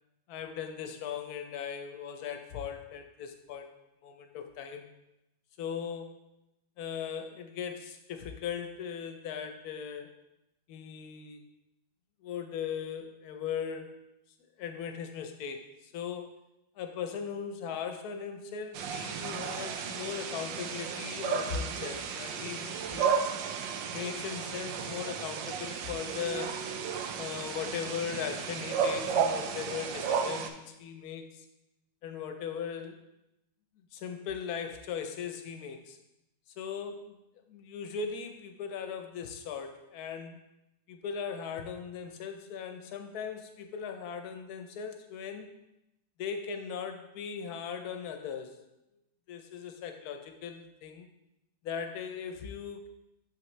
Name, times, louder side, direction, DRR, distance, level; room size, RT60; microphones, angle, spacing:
voice 1, 0.3-3.7 4.0-4.8 5.6-6.1 6.8-10.2 10.7-11.4 12.2-14.0 14.6-16.3 16.8-23.1 23.9-26.6 27.2-31.4 32.0-33.0 33.9-36.0 36.6-37.2 37.5-40.4 40.9-45.5 46.2-48.6 49.3-51.1 51.6-52.9, left 7 dB, 65° left, 6 dB, 1.1 m, -38 dB
sound 1, 18.7-30.5, right 6 dB, 90° right, 1.3 m, -33 dB
7.1 x 5.8 x 3.2 m, 0.89 s
omnidirectional pair, 1.9 m